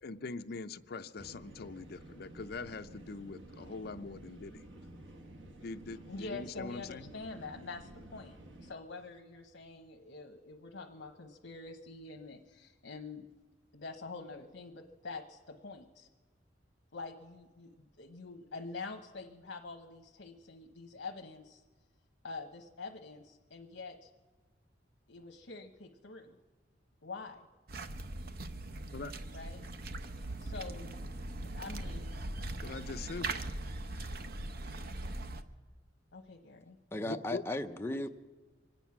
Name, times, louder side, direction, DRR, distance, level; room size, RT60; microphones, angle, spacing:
voice 1, 0.0-4.6 5.6-7.1 28.9-29.1 32.6-33.6 37.0-37.4, left 4 dB, 55° left, 0.5 m, -43 dB
sound 1, 1.2-8.7, right 1 dB, 85° right, 1.4 m, -52 dB
voice 2, 6.1-13.2 13.7-16.1 16.9-21.6 22.2-24.1 25.1-26.4 27.0-27.5 29.3-29.6 30.2-30.9 31.4-32.1 36.1-36.8, left 3 dB, 70° left, 1.0 m, -46 dB
sound 2, 27.7-35.4, right 2 dB, 55° right, 0.8 m, -40 dB
voice 3, 36.9-38.1, left 1 dB, 15° left, 0.6 m, -36 dB
24.5 x 9.1 x 5.9 m
head